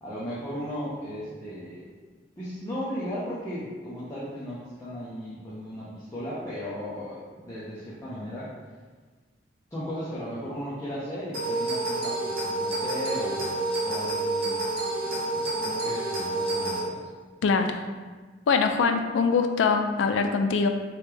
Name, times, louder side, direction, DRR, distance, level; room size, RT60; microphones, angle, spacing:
voice 1, 0.0-1.8 2.4-8.5 9.7-14.7 15.0-17.1, equal, 15° left, -10 dB, 0.7 m, -36 dB
sound 1, 11.3-16.8, right 2 dB, 55° right, 1.0 m, -28 dB
voice 2, 17.4-17.8 18.5-20.7, left 5 dB, 80° left, 6 dB, 0.3 m, -23 dB
3.3 x 3.2 x 3.3 m, 1.4 s
head